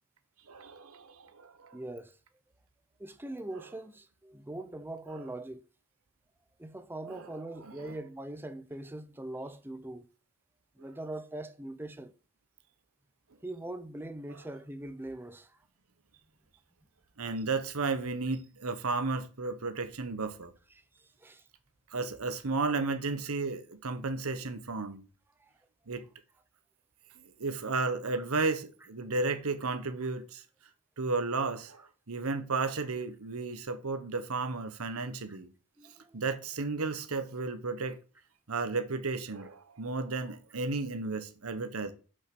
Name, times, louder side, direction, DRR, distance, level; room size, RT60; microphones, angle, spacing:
voice 1, 0.5-1.8 3.5-3.6 5.1-5.2 7.1-8.0 14.3-14.4 17.2-20.5 21.9-25.1 25.9-26.0 27.2-30.4 31.0-31.8 32.1-35.5 36.1-38.0 38.5-41.9, right 3 dB, 75° right, 1.1 m, -33 dB
voice 2, 1.7-2.1 3.0-5.6 6.6-10.1 10.8-12.1 13.4-15.5 21.2-21.4 35.3-35.4 35.8-36.2, right 1 dB, 10° right, 0.6 m, -41 dB
6.3 x 5.4 x 6.0 m
head